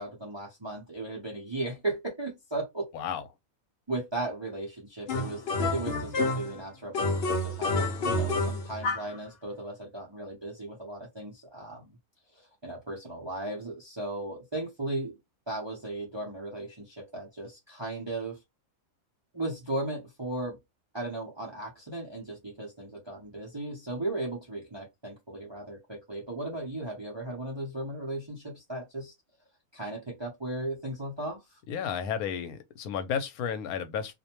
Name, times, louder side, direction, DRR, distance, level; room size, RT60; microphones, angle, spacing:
voice 1, 0.0-2.9 3.9-5.4 5.7-11.9 12.3-15.2 15.5-18.4 19.3-20.6 20.9-29.1 29.7-31.4, right 2 dB, 35° right, 0.4 m, -36 dB
voice 2, 2.9-3.2 31.7-34.1, left 7 dB, 85° left, 1.1 m, -32 dB
sound 1, 5.1-6.6 6.9-9.2, left 2 dB, 60° left, 0.7 m, -29 dB
2.5 x 2.1 x 2.8 m
omnidirectional pair, 1.5 m